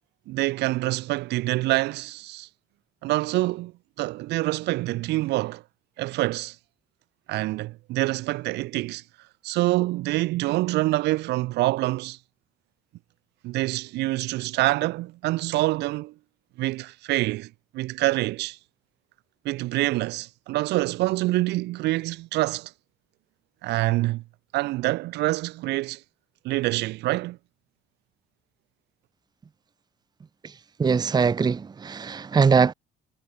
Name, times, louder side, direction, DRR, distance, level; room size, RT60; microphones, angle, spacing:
voice 1, 0.3-2.5 3.0-3.7 4.0-5.6 6.0-6.6 7.3-9.0 9.4-12.2 13.4-16.1 16.6-18.6 19.4-22.7 23.6-24.2 24.5-26.0 26.4-27.4, right 18 dB, 85° right, 2.1 m, -26 dB
voice 2, 30.8-32.7, right 5 dB, 25° right, 0.9 m, -21 dB
cardioid pair, 110°, 17 cm